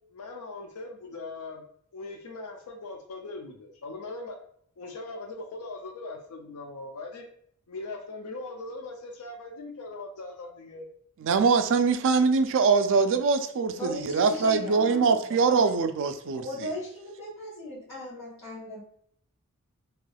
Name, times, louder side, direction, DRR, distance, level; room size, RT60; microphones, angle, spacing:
voice 1, 0.1-1.6 1.9-4.4 4.8-7.2 7.7-10.9, left 2 dB, 80° left, 0.5 m, -40 dB
voice 2, 11.2-16.4, right 5 dB, 55° right, 0.3 m, -23 dB
voice 3, 13.8-15.2 16.3-18.8, left 1 dB, 50° left, 1.3 m, -37 dB
3.2 x 2.9 x 2.3 m
head